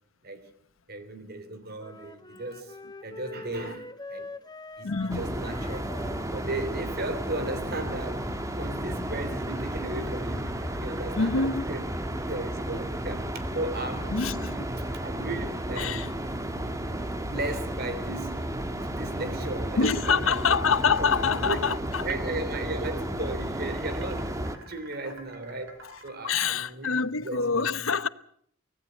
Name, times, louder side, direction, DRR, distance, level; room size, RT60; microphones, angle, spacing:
voice 1, 0.9-2.8 3.0-4.3 4.8-5.9 6.3-8.3 8.6-11.8 12.3-14.3 14.8-16.2 17.3-20.6 21.0-27.9, right 2 dB, 50° right, 3.2 m, -36 dB
Wind instrument woodwind instrument, 1.8-9.2, left 2 dB, 20° left, 1.1 m, -45 dB
voice 2, 4.8-5.2 11.2-11.6 14.1-14.6 15.8-16.1 19.8-22.1 25.0-25.1 26.2-28.1, left 5 dB, 90° left, 0.9 m, -26 dB
sound 1, 5.1-24.6, right 1 dB, 15° right, 1.7 m, -33 dB
sound 2, 8.4-14.6 17.4-19.0 19.5-20.9 22.1-26.1, right 3 dB, 75° right, 5.1 m, -54 dB
24.5 x 17.5 x 7.9 m
head